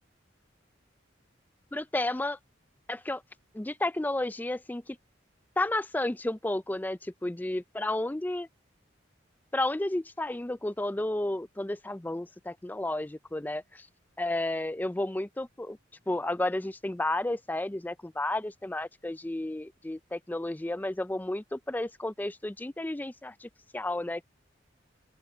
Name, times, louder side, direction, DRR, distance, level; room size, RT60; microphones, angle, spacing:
voice 1, 1.7-2.4 2.9-3.2 3.5-5.0 5.6-8.5 9.5-13.9 14.2-15.8 16.1-24.3, left 1 dB, 10° left, 0.4 m, -32 dB
open air
head